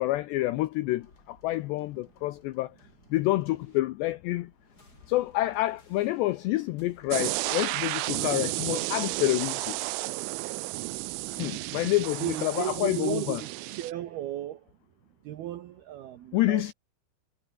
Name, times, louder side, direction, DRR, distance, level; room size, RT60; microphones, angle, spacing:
voice 1, 0.0-2.7 3.1-4.5 5.1-9.8 11.3-13.4 16.3-16.7, left 17 dB, 85° left, 2.5 m, -28 dB
sound 1, 1.0-12.5, left 2 dB, 20° left, 5.2 m, -59 dB
sound 2, 7.1-13.9, right 23 dB, 85° right, 2.8 m, -32 dB
voice 2, 12.2-14.8 15.2-16.7, right 13 dB, 65° right, 2.7 m, -35 dB
omnidirectional pair, 6.0 m